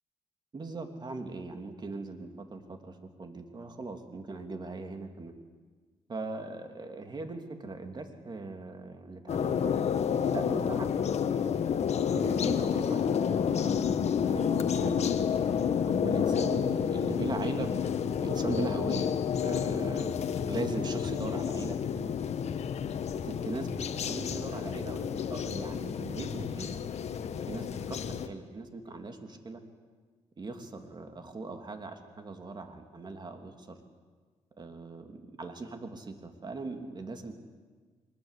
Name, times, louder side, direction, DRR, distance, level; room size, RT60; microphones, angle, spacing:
voice 1, 0.5-5.3 6.1-9.7 10.3-10.9 12.1-15.0 15.8-17.7 18.2-19.1 19.4-21.8 23.2-26.8 27.5-29.6 30.4-33.8 34.6-37.3, right 3 dB, 40° right, 5 dB, 3.0 m, -39 dB
sound 1, 9.3-28.3, left 7 dB, 65° left, 1.3 m, -30 dB
24.0 x 21.0 x 8.4 m, 1.5 s
cardioid pair, 85°, 12 cm